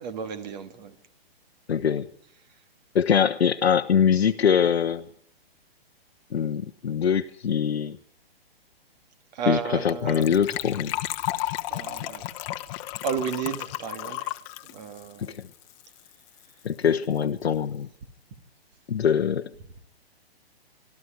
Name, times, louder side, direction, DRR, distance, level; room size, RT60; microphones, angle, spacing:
voice 1, 0.0-0.9 9.3-10.3 11.7-12.2 13.0-14.3 14.7-15.4, right 6 dB, 45° right, 2.1 m, -32 dB
voice 2, 1.7-2.1 2.9-5.0 6.3-8.0 9.5-10.9 15.2-15.4 16.6-17.9 18.9-19.5, left 8 dB, 85° left, 0.8 m, -23 dB
Gurgling / Trickle dribble / Fill (with liquid), 9.9-16.1 16.4-16.5 16.6-16.9 17.2-17.3, left 15 dB, 30° left, 1.0 m, -33 dB
24.5 x 13.0 x 9.3 m
hypercardioid pair, 135°, 31 cm